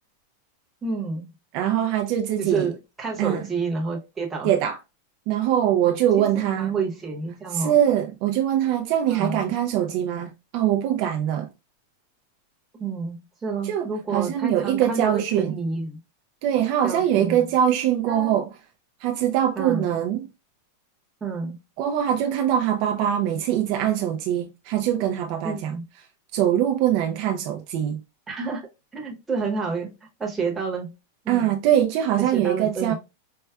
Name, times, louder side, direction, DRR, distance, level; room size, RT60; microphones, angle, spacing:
voice 1, 0.8-1.3 2.4-4.5 6.2-7.7 9.1-9.4 12.8-16.0 16.8-17.4 18.1-18.4 19.6-19.9 21.2-21.6 25.4-25.8 28.3-28.6 28.9-29.9 30.2-30.9 31.2-31.4 32.2-32.9, right 4 dB, 10° right, 0.8 m, -29 dB
voice 2, 1.5-2.7 3.2-3.5 4.4-4.8 5.3-6.8 7.5-11.5 13.6-15.5 16.4-18.5 19.0-20.3 21.8-25.8 26.3-28.0 31.3-32.9, right 10 dB, 40° right, 0.3 m, -23 dB
4.5 x 2.1 x 2.3 m
supercardioid pair, 175°, 0 cm